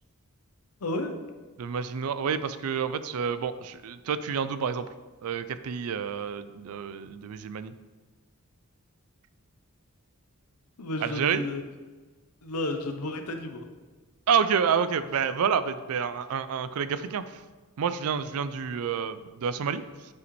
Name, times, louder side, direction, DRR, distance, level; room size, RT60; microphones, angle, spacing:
voice 1, 0.8-1.2 10.8-11.6 12.4-13.6, left 2 dB, 75° left, 6 dB, 0.8 m, -32 dB
voice 2, 1.6-4.9 5.2-7.7 11.0-11.4 14.3-17.4 17.8-19.8, right 7 dB, 70° right, 13 dB, 0.4 m, -28 dB
8.2 x 5.0 x 3.2 m, 1.3 s
head